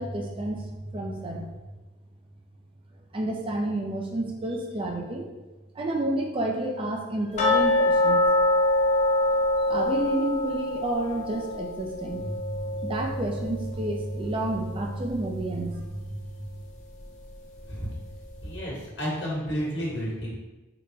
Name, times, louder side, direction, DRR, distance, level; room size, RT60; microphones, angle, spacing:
voice 1, 0.0-1.5 3.1-5.3 5.7-8.2 9.6-16.6, right 1 dB, 25° right, 1 dB, 0.4 m, -30 dB
sound 1, 7.4-14.2 14.5-14.6 15.1-15.2 15.8-15.9, left 1 dB, 35° left, 0.4 m, -25 dB
voice 2, 18.4-20.4, equal, 60° left, -5 dB, 1.3 m, -31 dB
4.1 x 2.1 x 3.3 m, 1.1 s
head